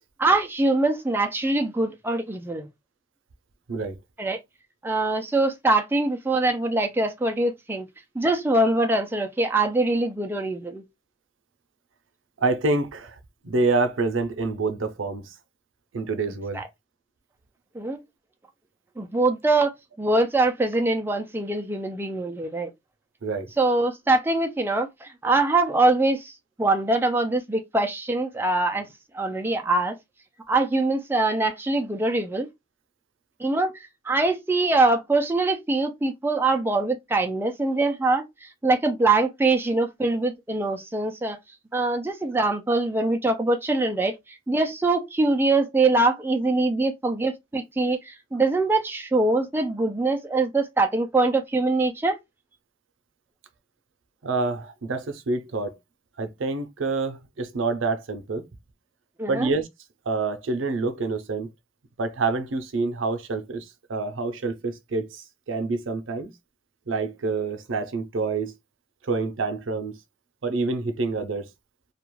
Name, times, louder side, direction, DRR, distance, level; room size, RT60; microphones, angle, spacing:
voice 1, 0.2-2.7 4.2-4.4 4.8-7.9 8.2-10.8 16.5-16.6 17.8-18.0 19.0-19.7 20.0-22.7 23.6-26.3 26.6-28.9 29.1-30.0 30.5-32.5 33.4-33.7 34.1-41.4 41.7-52.2 59.2-59.5, right 2 dB, 10° right, 0.3 m, -23 dB
voice 2, 12.4-13.2 13.4-15.3 15.9-16.6 23.2-23.5 54.2-55.8 56.2-58.5 59.3-59.7 60.1-61.5 62.0-66.3 66.9-68.5 69.0-70.0 70.4-71.5, right 3 dB, 90° right, 0.6 m, -27 dB
2.4 x 2.2 x 3.0 m
head